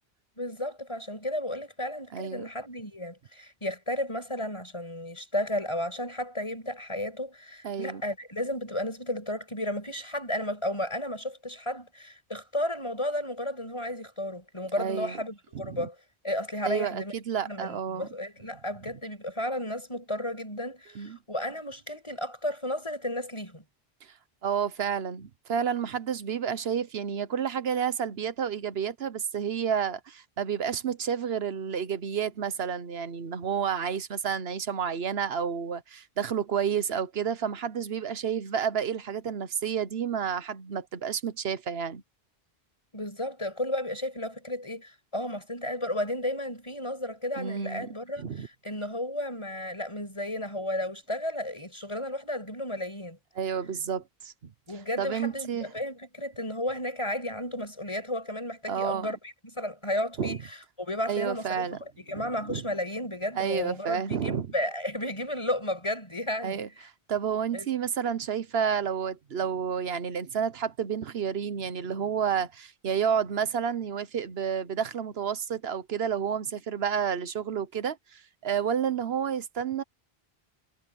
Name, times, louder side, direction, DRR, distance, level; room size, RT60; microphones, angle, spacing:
voice 1, 0.4-16.0 16.2-17.1 17.4-23.6 42.9-53.2 54.7-66.6 67.5-67.7, left 1 dB, 30° left, 6.8 m, -33 dB
voice 2, 2.1-2.4 7.6-8.0 14.8-15.2 15.5-15.9 16.6-18.1 21.0-21.2 24.4-42.0 47.4-47.9 48.2-48.5 53.4-54.5 55.0-55.7 58.7-59.1 60.2-60.4 61.1-61.8 62.1-62.6 63.4-64.5 66.4-66.7 67.1-79.8, right 7 dB, 75° right, 1.2 m, -30 dB
omnidirectional pair, 1.0 m